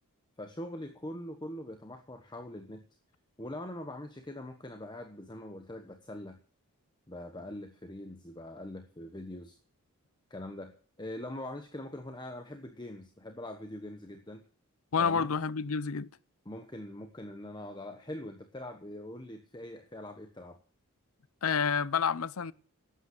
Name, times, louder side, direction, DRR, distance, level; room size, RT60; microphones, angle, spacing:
voice 1, 0.4-2.8 3.4-6.4 7.1-9.6 10.3-10.7 11.0-14.4 15.0-15.3 16.4-20.6, left 1 dB, 20° left, 1.1 m, -43 dB
voice 2, 14.9-16.1 21.4-22.5, left 6 dB, 70° left, 0.6 m, -29 dB
12.0 x 8.9 x 7.8 m
head